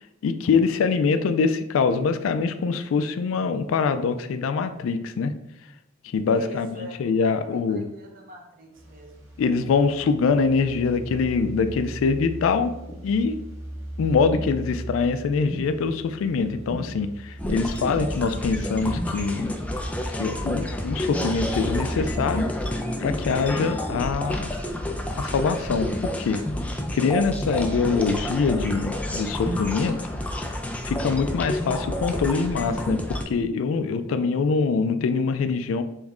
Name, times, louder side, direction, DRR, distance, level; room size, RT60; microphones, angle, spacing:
voice 1, 0.2-5.3 6.1-7.9 9.4-12.7 13.0-13.4 14.0-19.5 20.2-22.5 23.0-24.5 25.2-26.4 26.9-30.0 30.8-35.8, left 5 dB, 90° left, 10 dB, 0.3 m, -24 dB
voice 2, 6.3-9.1, equal, 45° right, 1 dB, 0.8 m, -43 dB
sound 1, 8.7-22.4, right 1 dB, 90° right, 1.0 m, -38 dB
sound 2, 10.0-10.4 11.4-11.8 12.9-13.3 14.3-14.8 15.5-16.0 16.7-17.0 17.9-18.3 19.4-19.7 20.8-21.0 21.9-22.3 23.0-23.3 24.3-24.6 25.5-25.8 26.8-27.1 27.6-27.9 28.7-29.1 29.4-29.5, equal, 40° left, 0.9 m, -40 dB
sound 3, 17.4-33.2, left 1 dB, 5° left, 0.3 m, -29 dB
3.5 x 3.1 x 3.6 m, 0.86 s
head